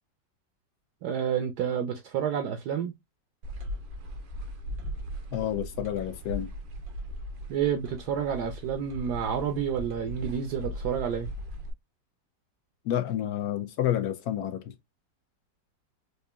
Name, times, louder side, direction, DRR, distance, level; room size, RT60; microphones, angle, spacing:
voice 1, 1.0-2.9 7.5-11.3, right 8 dB, 70° right, 1.1 m, -29 dB
sound 1, 3.4-11.7, equal, 85° right, 1.5 m, -38 dB
voice 2, 5.3-6.5 12.8-14.7, left 11 dB, 70° left, 1.0 m, -29 dB
4.8 x 2.6 x 2.2 m
omnidirectional pair, 1.9 m